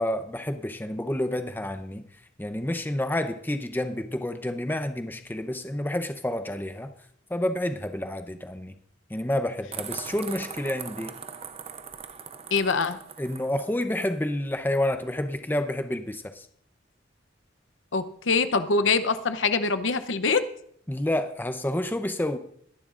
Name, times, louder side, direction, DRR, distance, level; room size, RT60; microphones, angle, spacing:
voice 1, 0.0-2.0 2.4-6.9 7.3-8.7 9.1-11.2 13.2-16.5 20.9-22.4, left 1 dB, 10° left, 8 dB, 0.7 m, -29 dB
sound 1, 9.7-14.1, right 7 dB, 35° right, 0.7 m, -40 dB
voice 2, 12.5-13.0 17.9-20.4, left 4 dB, 90° left, 11 dB, 0.8 m, -24 dB
22.0 x 11.0 x 2.5 m, 0.65 s
head